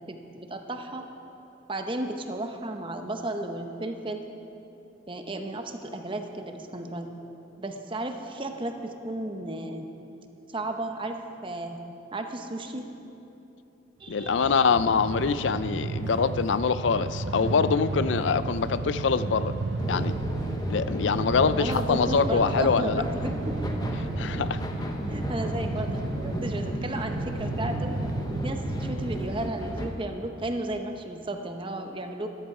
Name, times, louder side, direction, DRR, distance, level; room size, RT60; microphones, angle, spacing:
voice 1, 0.1-1.1 1.7-4.2 5.1-7.1 7.6-9.9 10.5-11.8 12.1-12.9 14.0-14.5 21.6-23.6 25.1-27.9 28.3-32.3, right 1 dB, 25° right, 5 dB, 0.8 m, -34 dB
voice 2, 14.1-19.6 19.9-20.1 20.7-23.0 24.2-24.6, left 5 dB, 75° left, 14 dB, 0.5 m, -24 dB
Train, 14.1-29.3, right 3 dB, 75° right, 0.6 m, -33 dB
sound 1, 19.8-29.9, left 1 dB, 20° left, 0.9 m, -34 dB
13.5 x 13.0 x 4.9 m, 2.9 s
head